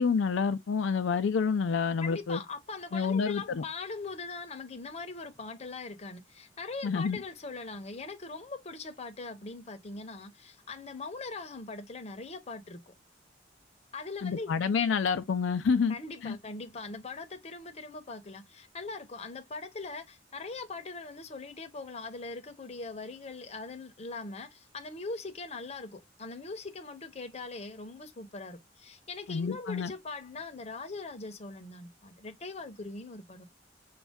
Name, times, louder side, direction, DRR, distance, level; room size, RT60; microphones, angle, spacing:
voice 1, 0.0-2.4 2.9-3.6 6.8-7.2 14.2-15.9 16.2-16.4 29.3-29.9, left 5 dB, 75° left, 0.4 m, -28 dB
voice 2, 2.0-12.9 13.9-14.5 15.9-33.4, left 3 dB, 35° left, 0.7 m, -41 dB
5.2 x 2.3 x 3.4 m
head